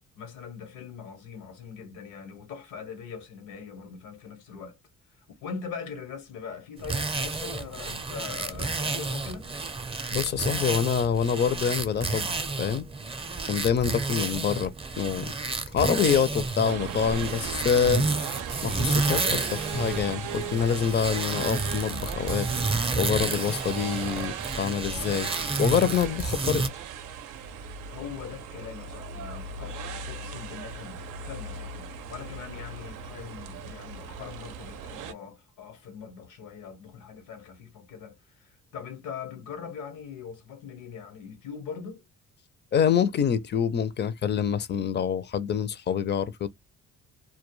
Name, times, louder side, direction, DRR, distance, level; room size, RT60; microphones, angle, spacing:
voice 1, 0.1-4.8 5.2-9.5 27.9-42.0, left 6 dB, 90° left, 1.0 m, -41 dB
sound 1, 6.8-26.7, right 3 dB, 20° right, 0.5 m, -31 dB
voice 2, 10.1-12.9 13.5-15.3 15.7-18.1 18.6-22.5 23.0-25.3 25.6-26.6 42.7-46.5, left 7 dB, 35° left, 0.4 m, -26 dB
sound 2, 16.7-35.1, right 6 dB, 90° right, 0.5 m, -38 dB
2.2 x 2.2 x 3.0 m
cardioid pair, 90°, 30 cm